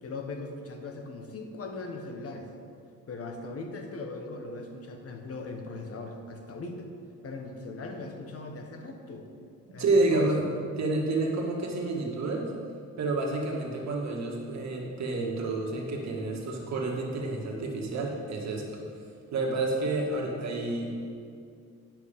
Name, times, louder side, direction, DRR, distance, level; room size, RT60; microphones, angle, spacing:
voice 1, 0.0-2.5 3.1-6.9 7.2-9.3 9.7-10.3, left 3 dB, 50° left, 4 dB, 1.2 m, -39 dB
voice 2, 9.8-10.4 10.8-12.5 13.0-18.8 19.3-20.9, right 2 dB, 60° right, -1 dB, 1.8 m, -29 dB
10.5 x 5.9 x 5.3 m, 2.4 s
cardioid pair, 90°, 30 cm